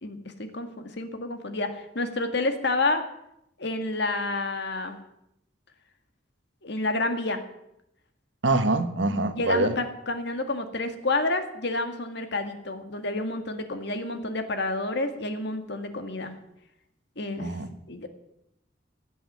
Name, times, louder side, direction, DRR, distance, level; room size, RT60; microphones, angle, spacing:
voice 1, 0.0-3.0 3.6-5.0 6.6-7.4 9.1-16.3 17.2-17.5 17.9-18.1, left 2 dB, 60° left, 7 dB, 1.9 m, -29 dB
voice 2, 8.4-9.7 17.4-17.7, right 2 dB, 70° right, 9 dB, 1.3 m, -24 dB
17.0 x 7.7 x 9.4 m, 0.81 s
head